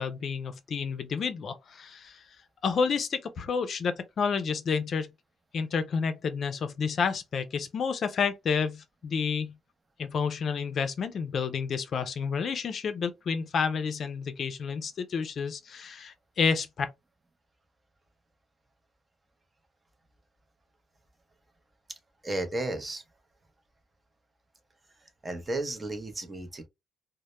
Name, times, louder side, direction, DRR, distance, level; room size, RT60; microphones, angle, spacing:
voice 1, 0.0-2.2 2.6-5.1 5.5-9.6 10.0-16.9, left 6 dB, 55° left, 0.4 m, -30 dB
voice 2, 22.2-23.0 25.2-26.7, right 2 dB, 25° right, 0.6 m, -33 dB
2.0 x 2.0 x 2.9 m
cardioid pair, 90°, 0 cm